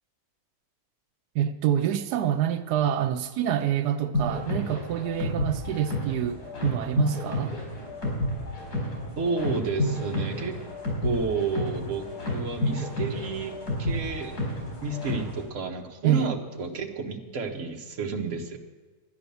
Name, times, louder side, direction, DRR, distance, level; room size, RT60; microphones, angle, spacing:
voice 1, 1.3-7.5 16.0-16.3, right 10 dB, 90° right, 1.2 m, -26 dB
sound 1, 4.1-15.4, left 1 dB, 70° left, 5.3 m, -31 dB
voice 2, 9.2-10.6 11.0-14.3 14.8-18.6, right 4 dB, 55° right, 1.5 m, -31 dB
12.0 x 9.9 x 6.9 m
omnidirectional pair, 1.7 m